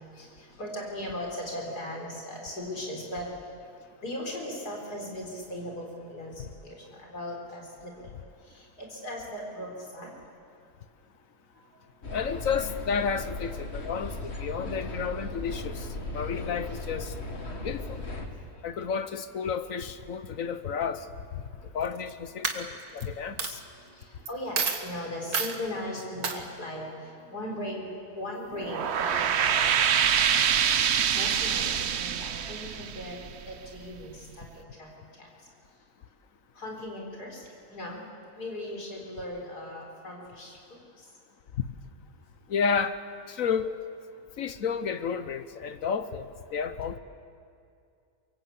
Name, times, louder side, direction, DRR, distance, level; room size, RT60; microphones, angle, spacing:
voice 1, 0.1-3.5 4.0-8.1 8.4-10.1 14.3-14.4 14.7-14.8 17.5-17.6 18.2-18.7 23.9-30.5 30.9-33.2 33.5-34.9 35.2-35.3 36.5-38.0 38.4-40.6 41.0-41.1, left 1 dB, 85° left, 0 dB, 5.0 m, -38 dB
sound 1, 12.0-18.3, left 2 dB, 45° left, 2.0 m, -37 dB
voice 2, 12.1-15.8 16.1-17.1 17.6-18.0 18.6-21.0 21.7-23.6 42.5-43.0 43.3-43.7 44.4-46.2 46.5-47.0, left 6 dB, 60° left, 11 dB, 1.2 m, -31 dB
Coin (dropping), 21.8-22.1 22.4-23.0 23.4-23.5 24.3-24.4 24.5-24.8 25.3-25.6 26.2-26.4, right 5 dB, 70° right, 2.1 m, -29 dB
sound 2, 28.5-33.8, right 8 dB, 55° right, 0.9 m, -25 dB
23.5 x 23.0 x 8.4 m, 2.4 s
omnidirectional pair, 1.6 m